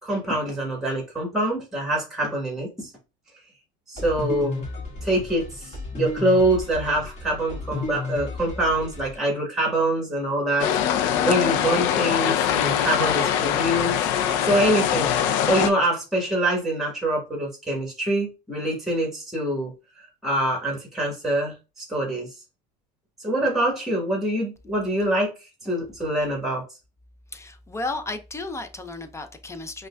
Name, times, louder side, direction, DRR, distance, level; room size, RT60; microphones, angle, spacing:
voice 1, 0.0-2.9 3.9-4.6 5.0-10.7 11.0-14.0 14.4-15.1 15.5-19.7 20.2-22.3 23.2-25.3 25.6-26.6, right 1 dB, ahead, 1.4 m, -25 dB
sound 1, 4.0-9.2, left 2 dB, 30° left, 1.6 m, -33 dB
sound 2, 10.6-15.7, left 9 dB, 70° left, 0.5 m, -23 dB
voice 2, 27.3-29.9, left 2 dB, 15° left, 0.5 m, -33 dB
5.2 x 2.3 x 2.2 m
supercardioid pair, 105°, 20 cm